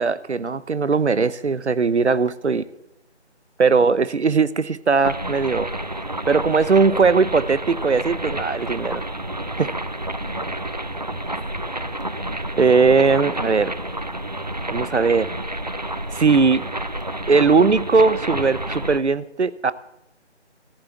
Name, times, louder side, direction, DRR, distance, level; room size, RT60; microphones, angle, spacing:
voice 1, 0.0-2.6 3.6-5.7 6.3-9.0 12.6-13.7 14.7-15.3 16.1-16.7 17.3-19.7, right 4 dB, 70° right, 17 dB, 0.8 m, -19 dB
voice 2, 2.4-2.8 10.2-11.9, left 1 dB, 15° left, 2 dB, 0.9 m, -48 dB
sound 1, 5.0-19.0, right 1 dB, 40° right, 0.5 m, -29 dB
14.0 x 8.2 x 7.9 m, 0.81 s
figure-of-eight pair, 160°, 35 cm